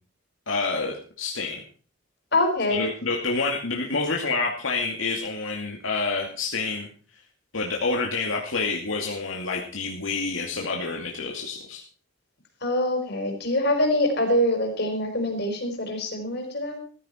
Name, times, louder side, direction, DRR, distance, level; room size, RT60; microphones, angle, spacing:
voice 1, 0.5-1.6 2.7-6.9 7.5-11.8, left 3 dB, 80° left, -1 dB, 2.4 m, -28 dB
voice 2, 2.3-2.8 12.6-16.8, left 1 dB, 55° left, 3 dB, 4.9 m, -24 dB
15.0 x 14.5 x 4.4 m, 0.40 s
head